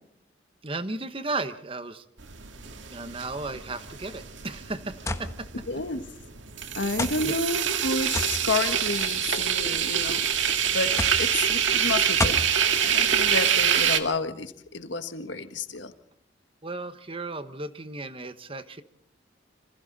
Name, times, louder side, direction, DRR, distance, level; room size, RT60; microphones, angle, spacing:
voice 1, 0.6-2.0 2.6-5.5 7.2-7.4 16.6-18.8, right 2 dB, 30° right, 11 dB, 1.1 m, -35 dB
sound 1, 2.2-14.0, right 8 dB, 90° right, 1.9 m, -26 dB
sound 2, 5.1-5.3 6.2-6.3 7.0-7.2 8.1-8.4 9.4-9.8 11.0-11.3 12.2-12.5, left 2 dB, 15° left, 1.2 m, -28 dB
voice 2, 5.7-6.0 6.7-12.5 12.8-15.9, left 3 dB, 75° left, 8 dB, 1.6 m, -31 dB
sound 3, 6.8-13.3, equal, 50° right, 2.9 m, -44 dB
27.0 x 26.0 x 4.1 m, 0.66 s
head